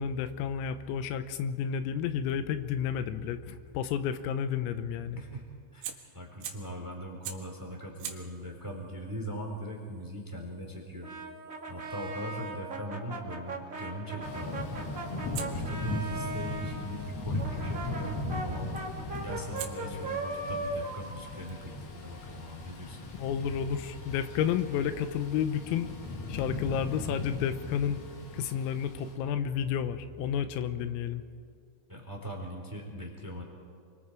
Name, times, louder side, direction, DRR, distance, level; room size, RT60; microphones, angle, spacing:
voice 1, 0.0-5.2 23.2-25.9 26.3-28.0 28.3-31.2, left 8 dB, 90° left, 10 dB, 3.7 m, -31 dB
voice 2, 5.1-11.1 11.7-14.6 15.2-18.8 19.2-23.0 31.9-33.4, right 1 dB, 5° right, 1 dB, 2.7 m, -40 dB
Fire, 5.8-6.8 7.2-7.6 8.0-12.9 15.3-17.4 18.8-19.1 19.6-23.0, right 8 dB, 70° right, 3.9 m, -48 dB
Brass instrument, 11.0-16.8 17.4-22.1, right 2 dB, 40° right, 1.1 m, -38 dB
Thunder / Rain, 14.2-29.1, left 2 dB, 55° left, 4.1 m, -38 dB
29.5 x 24.0 x 4.8 m, 2.2 s
omnidirectional pair, 5.9 m